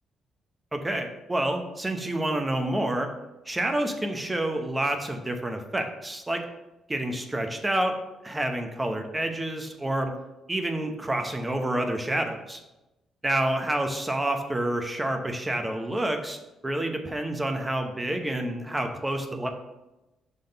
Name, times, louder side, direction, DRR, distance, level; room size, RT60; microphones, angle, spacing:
voice 1, 0.7-3.1 3.5-6.4 6.9-8.0 8.2-10.1 10.5-12.6 13.2-16.4 16.6-19.5, right 1 dB, 15° right, 5 dB, 0.8 m, -28 dB
5.9 x 3.5 x 5.4 m, 0.99 s
cardioid pair, 90°, 0 cm